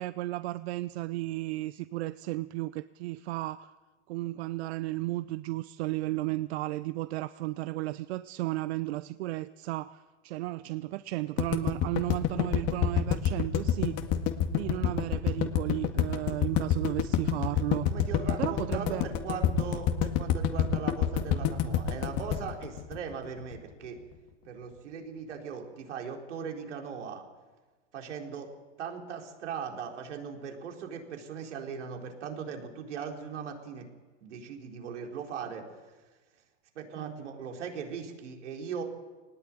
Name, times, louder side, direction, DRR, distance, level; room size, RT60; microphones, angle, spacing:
voice 1, 0.0-3.7 4.1-14.0 14.5-17.9 18.4-19.1 37.0-37.1, right 18 dB, 65° right, 14 dB, 0.8 m, -34 dB
sound 1, 11.4-23.6, left 9 dB, 45° left, 2.0 m, -27 dB
voice 2, 17.8-24.0 24.5-27.2 27.9-28.5 28.8-33.9 34.2-35.6 36.7-38.8, right 6 dB, 85° right, 2 dB, 4.4 m, -39 dB
20.0 x 19.0 x 9.0 m, 1.3 s
hypercardioid pair, 115°, 35 cm